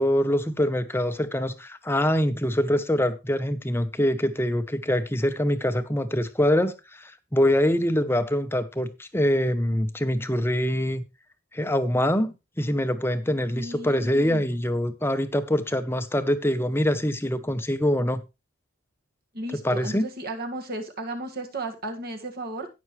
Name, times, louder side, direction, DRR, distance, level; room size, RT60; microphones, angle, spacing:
voice 1, 0.0-11.0 11.5-18.2 19.6-20.1, equal, 10° left, 11 dB, 0.8 m, -24 dB
voice 2, 13.6-14.4 19.3-22.7, right 1 dB, 45° right, 3 dB, 1.9 m, -34 dB
17.0 x 6.2 x 3.2 m, 0.25 s
head